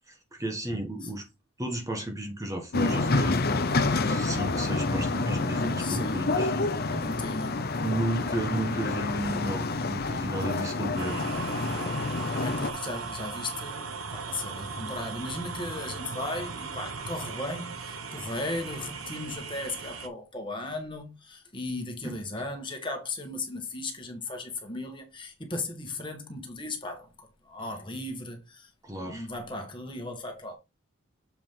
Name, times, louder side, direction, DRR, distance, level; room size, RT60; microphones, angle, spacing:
voice 1, 0.1-1.3 1.6-3.5 4.0-7.0 7.8-11.2 22.0-22.2 28.8-29.3, right 1 dB, 15° right, 1.3 m, -33 dB
sound 1, 2.7-12.7, left 3 dB, 45° left, 0.7 m, -28 dB
voice 2, 5.8-6.2 6.9-7.6 12.4-28.7 28.9-30.6, left 2 dB, 25° left, 1.6 m, -36 dB
sound 2, 11.0-20.1, right 4 dB, 80° right, 1.1 m, -38 dB
7.3 x 4.9 x 3.7 m
head